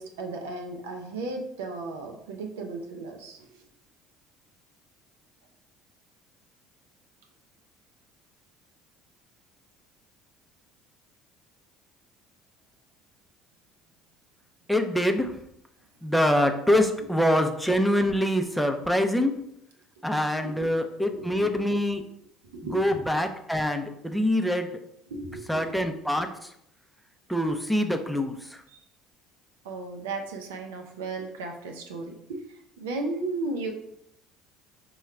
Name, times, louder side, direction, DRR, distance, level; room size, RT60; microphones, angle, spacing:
voice 1, 0.0-3.5 16.9-17.1 18.9-19.0 20.4-20.7 21.0-21.6 22.5-23.0 25.1-25.8 28.7-28.8 29.6-33.7, right 3 dB, 85° right, 3 dB, 0.6 m, -35 dB
voice 2, 14.7-15.3 16.0-19.3 20.0-22.0 22.7-24.7 25.5-26.3 27.3-28.3, left 1 dB, ahead, 5 dB, 0.5 m, -24 dB
4.6 x 2.3 x 3.2 m, 0.76 s
hypercardioid pair, 70°, 0 cm